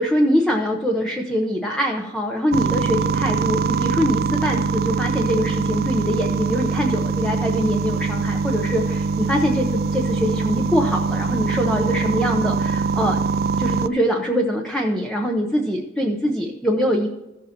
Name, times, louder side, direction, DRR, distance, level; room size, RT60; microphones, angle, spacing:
voice 1, 0.0-13.2 13.6-17.1, equal, 5° left, 1 dB, 0.8 m, -23 dB
sound 1, 2.5-13.9, right 4 dB, 55° right, 0.3 m, -23 dB
15.5 x 7.4 x 2.9 m, 1.0 s
head